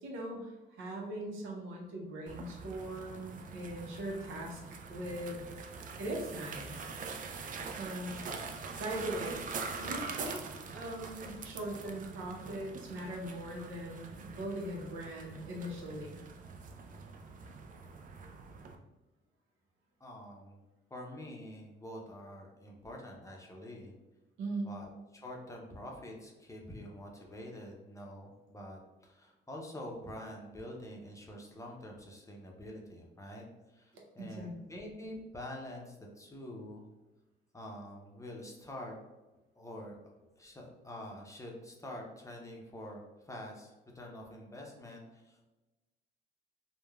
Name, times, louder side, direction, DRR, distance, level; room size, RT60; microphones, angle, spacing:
voice 1, 0.0-4.6 4.9-5.4 6.0-6.9 7.8-8.2 8.8-9.4 9.8-10.4 10.7-16.2 24.4-24.7 34.2-34.5, right 1 dB, 90° right, -1 dB, 0.7 m, -40 dB
sound 1, 2.3-18.8, right 4 dB, 45° right, 0.4 m, -44 dB
voice 2, 20.0-20.6 20.9-23.9 24.6-36.9 37.5-39.0 39.6-45.5, left 1 dB, 15° left, -1 dB, 0.5 m, -46 dB
3.1 x 2.1 x 2.3 m, 1.1 s
cardioid pair, 90°, 20 cm